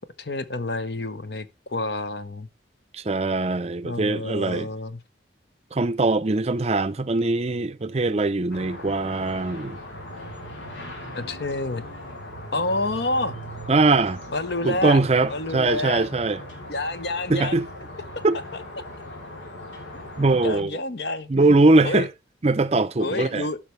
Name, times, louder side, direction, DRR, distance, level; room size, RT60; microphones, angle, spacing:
voice 1, 0.2-2.5 3.8-5.0 11.1-11.8 12.5-13.4 14.3-15.0 15.3-16.1 16.7-17.6 18.5-18.6 19.9-20.0 20.4-21.3 21.8-22.1 23.0-23.6, left 2 dB, 60° left, 0.9 m, -28 dB
voice 2, 2.9-4.7 5.7-9.8 13.7-14.2 14.6-16.4 17.3-17.7 18.2-18.4 20.2-20.8 21.3-22.1 22.4-23.5, right 3 dB, 35° right, 0.5 m, -21 dB
sound 1, 8.5-20.6, equal, 90° left, 3.2 m, -39 dB
15.0 x 5.8 x 3.2 m
head